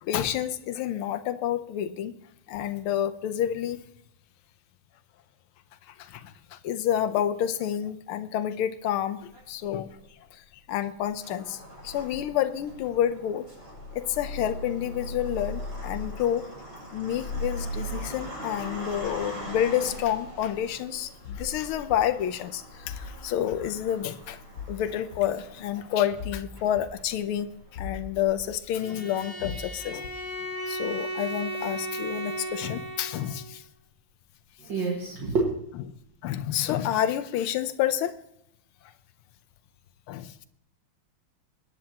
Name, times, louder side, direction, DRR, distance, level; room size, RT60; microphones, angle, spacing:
voice 1, 0.0-2.2 2.5-3.8 5.9-10.0 10.3-13.5 13.9-16.5 16.9-24.4 24.7-30.1 30.7-33.6 36.2-38.2 40.1-40.5, left 10 dB, 90° left, 1.6 m, -29 dB
sound 1, 9.3-10.1 10.8-28.6, equal, 35° right, 6.3 m, -40 dB
sound 2, 21.2-21.5 21.9-22.0 22.8-23.1 23.5-23.6 24.5-24.8 25.1-25.2 26.2-26.4 26.8-26.9 27.8-28.0 28.4-28.5 29.4-29.6 30.0-30.2, left 6 dB, 60° left, 1.4 m, -38 dB
Bowed string instrument, 28.7-33.5, right 1 dB, 15° right, 0.9 m, -35 dB
voice 2, 34.6-35.5, right 3 dB, 60° right, 2.4 m, -27 dB
23.0 x 10.0 x 2.9 m
omnidirectional pair, 2.3 m